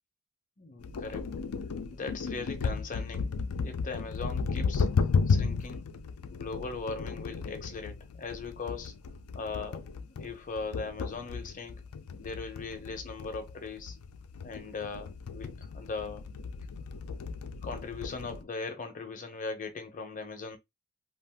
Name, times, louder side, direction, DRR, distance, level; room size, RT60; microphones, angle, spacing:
voice 1, 0.6-1.3 1.9-3.3 3.6-4.9 5.3-5.9 6.3-8.9 9.3-9.8 10.1-11.8 12.2-14.0 14.4-16.3 17.6-20.6, left 4 dB, 35° left, 0.7 m, -39 dB
sound 1, 0.8-18.4, left 5 dB, 75° left, 0.4 m, -34 dB
2.5 x 2.3 x 3.4 m
head